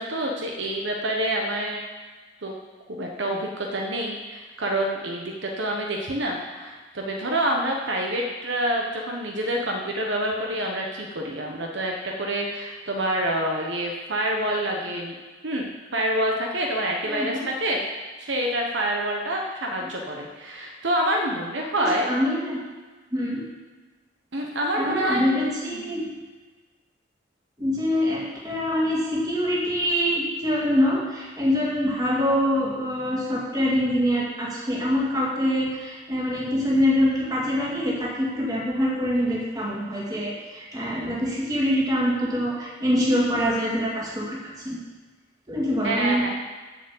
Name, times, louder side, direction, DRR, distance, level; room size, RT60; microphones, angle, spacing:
voice 1, 0.0-1.8 2.4-2.5 2.9-15.1 15.4-17.8 18.2-22.1 24.3-25.3 25.7-26.0 45.8-46.3, right 1 dB, 65° right, 0 dB, 1.1 m, -27 dB
voice 2, 17.1-17.4 19.8-19.9 21.8-22.6 23.1-23.4 24.8-26.1 27.6-44.4 44.6-44.8 45.5-46.2, equal, 20° right, -5 dB, 2.2 m, -24 dB
7.4 x 6.8 x 7.1 m, 1.3 s
head